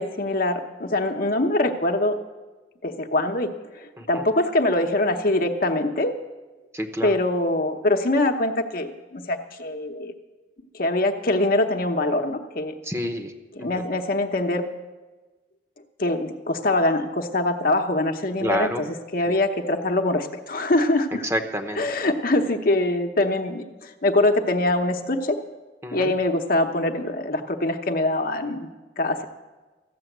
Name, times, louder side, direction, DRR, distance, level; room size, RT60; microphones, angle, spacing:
voice 1, 0.0-2.2 2.8-6.1 7.0-10.1 10.7-12.7 13.5-14.7 16.0-21.2 21.8-25.4 25.9-28.7 29.0-29.2, left 2 dB, 55° left, 5 dB, 0.9 m, -23 dB
voice 2, 6.7-7.1 12.8-13.3 13.6-13.7 18.4-18.8 19.3-19.4 21.2-21.8 25.8-26.1, equal, 15° right, 6 dB, 0.9 m, -28 dB
14.0 x 7.0 x 9.1 m, 1.2 s
head